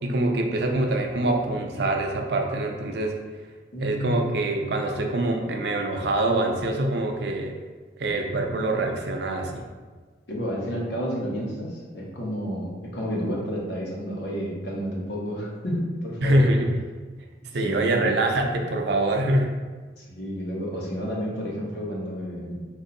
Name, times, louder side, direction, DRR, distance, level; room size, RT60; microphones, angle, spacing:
voice 1, 0.0-3.2 3.8-7.6 8.0-9.7 16.2-16.7 17.5-19.6, right 1 dB, 65° right, 2 dB, 0.5 m, -24 dB
voice 2, 3.7-4.3 10.3-16.4 17.6-18.2 20.0-22.6, equal, 75° left, -4 dB, 1.1 m, -31 dB
4.3 x 2.6 x 3.9 m, 1.4 s
head